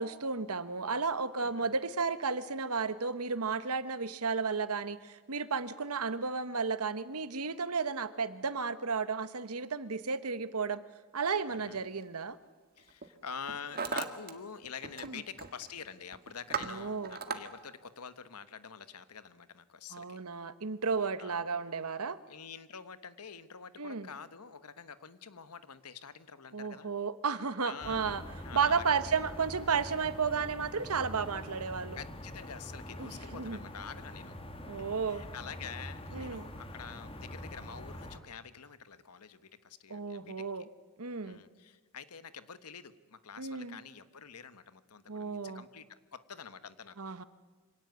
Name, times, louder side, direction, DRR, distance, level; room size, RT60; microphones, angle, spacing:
voice 1, 0.0-10.8 11.1-12.4 15.0-15.1 16.6-17.2 19.9-22.2 23.8-24.1 26.5-28.2 28.5-32.0 33.0-33.6 34.7-35.2 36.1-36.4 39.9-40.6 41.0-41.4 43.4-43.8 45.1-45.6 47.0-47.2, right 5 dB, 75° right, 13 dB, 1.2 m, -33 dB
voice 2, 11.5-11.8 12.7-20.2 21.0-21.5 22.3-26.9 27.6-28.1 28.4-29.1 31.9-34.3 34.6-40.5 41.2-47.0, left 6 dB, 85° left, 13 dB, 1.3 m, -47 dB
Hammer, 11.8-12.0 12.8-13.1 13.3-14.3 14.6-15.1 15.4-15.7 16.1-17.4, right 5 dB, 45° right, 1.7 m, -37 dB
sound 1, 27.8-38.2, left 1 dB, 25° left, 2.0 m, -45 dB
25.0 x 17.5 x 9.4 m, 1.3 s
head